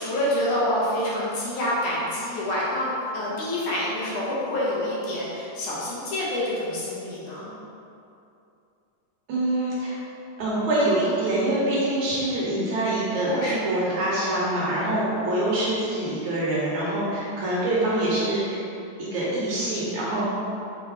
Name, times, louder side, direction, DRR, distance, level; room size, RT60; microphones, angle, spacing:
voice 1, 0.0-7.5 13.0-14.3 14.6-14.7, left 1 dB, 65° left, -7 dB, 2.4 m, -27 dB
voice 2, 9.3-10.0 10.4-18.6 19.0-20.2, right 1 dB, 65° right, -7 dB, 2.3 m, -25 dB
7.0 x 3.8 x 4.1 m, 2.7 s
omnidirectional pair, 3.9 m